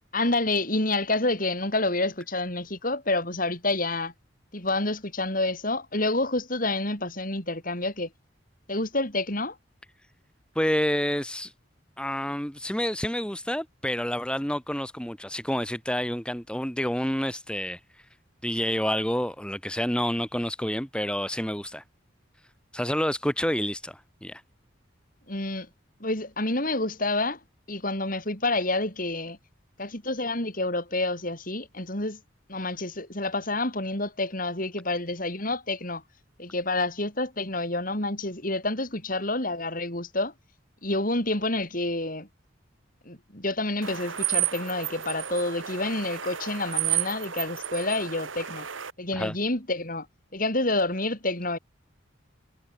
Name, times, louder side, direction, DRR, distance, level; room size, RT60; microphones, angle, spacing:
voice 1, 0.1-4.1 4.5-8.1 8.7-9.6 25.3-25.7 26.0-27.4 27.7-29.4 29.8-32.2 32.5-36.0 36.4-40.3 40.8-42.3 43.0-48.7 49.0-50.1 50.3-51.6, left 2 dB, 45° left, 6.6 m, -28 dB
voice 2, 10.5-11.5 12.0-17.8 18.4-21.8 22.7-24.4 49.1-49.3, equal, 5° left, 5.1 m, -28 dB
sound 1, 43.8-48.9, right 12 dB, 85° right, 2.2 m, -31 dB
head